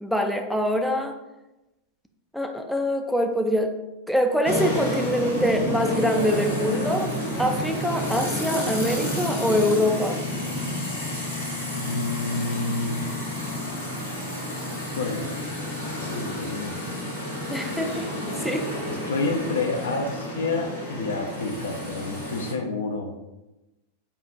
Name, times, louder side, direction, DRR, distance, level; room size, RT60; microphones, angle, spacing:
voice 1, 0.0-1.1 2.3-3.7 4.1-7.1 7.4-10.2 17.5-18.1 18.4-18.7, equal, ahead, 4 dB, 0.4 m, -24 dB
sound 1, 4.5-22.5, left 1 dB, 85° left, 1.1 m, -30 dB
voice 2, 11.7-13.0 14.7-15.3 15.8-16.7 18.8-23.1, left 3 dB, 65° left, 4 dB, 0.5 m, -29 dB
5.4 x 2.5 x 2.4 m, 1.0 s
figure-of-eight pair, 90°, 0 cm